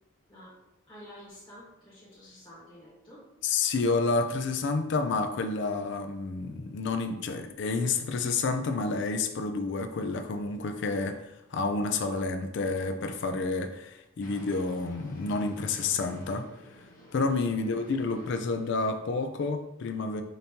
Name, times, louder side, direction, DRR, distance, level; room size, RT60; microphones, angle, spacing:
voice 1, 0.3-0.6 0.9-3.3 17.4-17.8, equal, 20° left, -10 dB, 1.3 m, -50 dB
voice 2, 3.4-16.4 17.1-20.2, left 3 dB, 55° left, 7 dB, 0.4 m, -29 dB
sound 1, 14.2-19.2, left 1 dB, 40° left, 0.9 m, -51 dB
5.1 x 2.7 x 2.8 m, 0.88 s
head